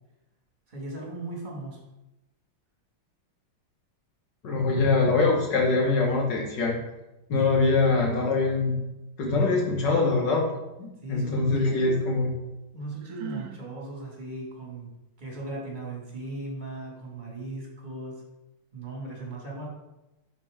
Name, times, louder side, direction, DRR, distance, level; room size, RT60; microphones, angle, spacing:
voice 1, 0.7-1.8 11.0-12.1 12.7-14.9 15.2-18.2 18.7-19.7, right 2 dB, 25° right, -3 dB, 1.9 m, -37 dB
voice 2, 4.4-6.8 7.3-8.7 9.2-10.5 10.8-12.3, left 3 dB, 65° left, -1 dB, 2.1 m, -23 dB
Sigh, 13.0-13.7, right 9 dB, 80° right, 1.3 m, -38 dB
7.5 x 5.7 x 3.6 m, 0.96 s
omnidirectional pair, 2.1 m